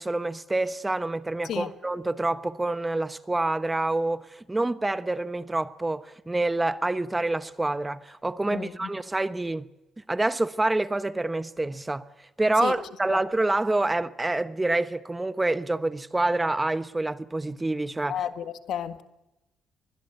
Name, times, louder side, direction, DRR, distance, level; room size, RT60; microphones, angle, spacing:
voice 1, 0.0-9.6 10.1-12.0 12.4-18.2, right 2 dB, 15° right, 1.0 m, -27 dB
voice 2, 8.5-8.9 12.6-12.8 13.1-13.2 18.1-19.0, left 9 dB, 75° left, 1.7 m, -32 dB
24.0 x 21.5 x 8.0 m
cardioid pair, 90°, 0 cm